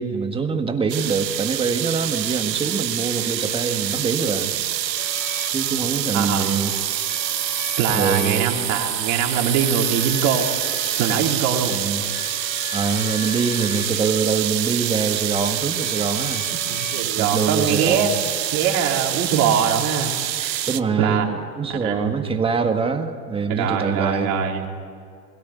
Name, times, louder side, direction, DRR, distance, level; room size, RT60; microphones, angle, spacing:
voice 1, 0.0-4.5 5.5-6.7 7.9-8.7 11.7-12.0 12.7-16.4 17.2-18.1 20.7-24.3, right 5 dB, 10° right, 6 dB, 1.6 m, -24 dB
sound 1, 0.9-20.8, right 12 dB, 85° right, 0.9 m, -26 dB
sound 2, 5.0-17.5, left 8 dB, 40° left, 2.3 m, -40 dB
voice 2, 6.1-6.6 7.8-10.5 11.0-11.7 16.7-18.1 18.5-20.1 20.4-20.6 21.0-21.2 21.7-22.1 23.5-24.6, right 7 dB, 35° right, 1 dB, 3.7 m, -23 dB
21.5 x 17.0 x 9.5 m, 2.3 s
hypercardioid pair, 130°, 49 cm